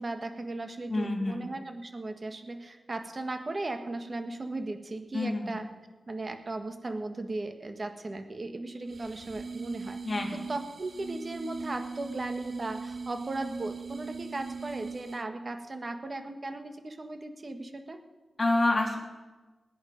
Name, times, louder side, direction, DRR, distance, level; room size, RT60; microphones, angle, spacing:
voice 1, 0.0-5.6 6.1-10.0 10.5-18.0, right 2 dB, 40° right, 6 dB, 1.5 m, -37 dB
voice 2, 0.9-1.4 5.1-5.6 10.0-10.5 18.4-19.0, left 2 dB, 40° left, 0 dB, 3.1 m, -28 dB
sound 1, 8.9-15.4, right 4 dB, 60° right, 0.5 m, -40 dB
20.0 x 9.6 x 5.3 m, 1.2 s
wide cardioid pair, 80°, 0 cm